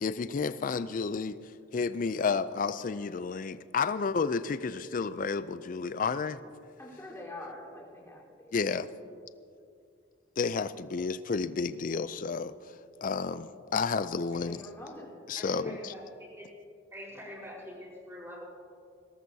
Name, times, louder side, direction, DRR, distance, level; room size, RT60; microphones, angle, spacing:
voice 1, 0.0-1.4 1.7-6.4 8.5-8.9 10.4-12.5 13.0-14.7 15.3-15.9, left 5 dB, 45° left, 13 dB, 0.4 m, -31 dB
voice 2, 6.8-8.8 14.5-15.1, left 1 dB, 15° left, -6 dB, 3.9 m, -45 dB
voice 3, 15.4-16.5 16.9-18.4, equal, 15° right, -5 dB, 4.5 m, -45 dB
22.0 x 18.0 x 2.8 m, 2.3 s
head